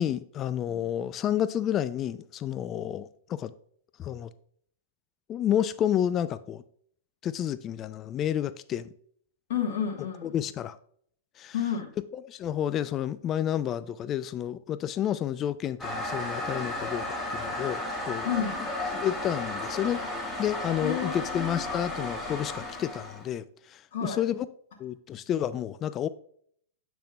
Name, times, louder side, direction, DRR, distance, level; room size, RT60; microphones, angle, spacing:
voice 1, 0.0-3.5 4.0-4.3 5.3-6.6 7.2-8.9 10.2-10.8 11.4-11.5 12.1-18.3 19.0-20.0 20.4-24.5 24.8-26.1, left 10 dB, 30° left, 0.3 m, -30 dB
voice 2, 9.5-10.3 11.5-11.9 18.2-18.6 20.8-21.6 23.9-24.2, left 8 dB, 60° left, 1.2 m, -31 dB
Toilet flush, 15.8-23.3, left 1 dB, 10° left, 1.7 m, -34 dB
8.3 x 6.0 x 2.3 m
figure-of-eight pair, 105°, 0 cm